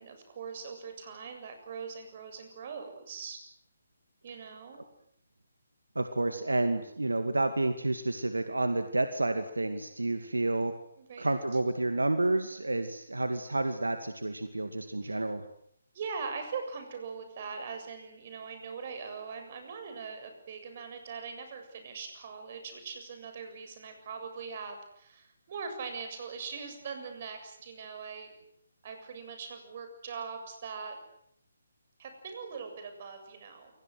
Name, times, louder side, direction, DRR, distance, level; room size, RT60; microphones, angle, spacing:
voice 1, 0.0-3.4 4.2-4.8 11.0-11.3 15.0-15.2 15.9-28.3 28.8-31.0 32.0-33.7, right 5 dB, 40° right, 7 dB, 7.5 m, -41 dB
voice 2, 6.0-10.7 11.2-15.5, right 2 dB, 75° right, 8 dB, 2.3 m, -30 dB
29.0 x 24.0 x 8.0 m, 0.71 s
figure-of-eight pair, 140°, 0 cm